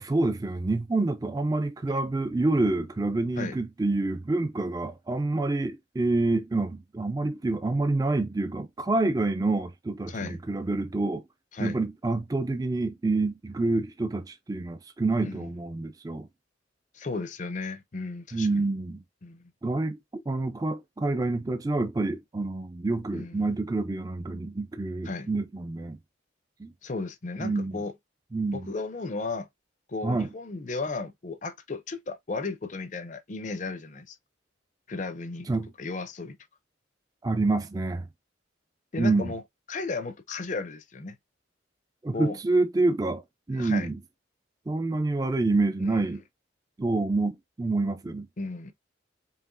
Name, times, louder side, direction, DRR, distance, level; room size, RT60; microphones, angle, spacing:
voice 1, 0.0-11.2 11.6-16.3 18.3-19.0 19.6-26.0 26.6-26.7 27.4-27.8 28.3-28.7 30.0-30.3 35.5-35.7 37.2-38.1 39.0-39.3 42.0-43.2 43.5-44.0 44.7-46.2 46.8-48.3, right 2 dB, 20° right, 0.3 m, -27 dB
voice 2, 10.1-10.4 11.5-11.8 15.2-15.5 16.9-18.7 19.2-19.5 23.1-23.5 25.0-25.3 26.8-27.9 28.5-29.5 29.9-34.2 34.9-35.5 35.8-36.4 38.9-39.4 39.7-41.2 42.1-42.4 43.5-43.9 48.4-48.7, left 3 dB, 40° left, 0.5 m, -34 dB
4.7 x 2.9 x 2.5 m
head